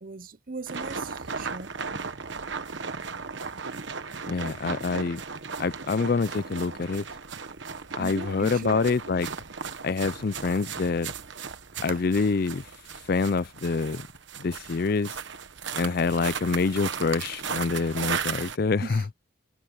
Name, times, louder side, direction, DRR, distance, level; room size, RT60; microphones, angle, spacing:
voice 1, 0.0-1.8 8.0-8.8 11.9-12.0 18.8-19.0, right 4 dB, 45° right, 0.8 m, -38 dB
sound 1, 0.7-18.6, right 5 dB, 65° right, 1.2 m, -36 dB
voice 2, 4.3-5.2 5.6-7.1 8.0-9.3 9.8-11.1 11.8-12.6 13.1-14.1 14.4-15.2 15.8-19.0, left 4 dB, 45° left, 0.4 m, -26 dB
head